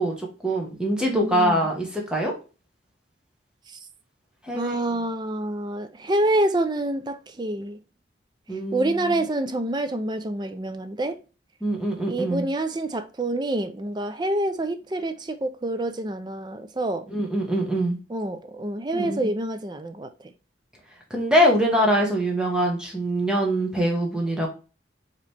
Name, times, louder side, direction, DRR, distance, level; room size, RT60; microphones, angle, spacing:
voice 1, 0.0-2.3 4.5-4.7 8.5-9.2 11.6-12.5 17.1-18.0 18.9-19.3 21.1-24.5, equal, 5° right, 1.1 m, -24 dB
voice 2, 1.0-1.7 4.5-7.8 8.7-11.2 12.1-17.1 18.1-20.1, right 1 dB, 25° right, 0.4 m, -27 dB
4.9 x 3.0 x 3.3 m
head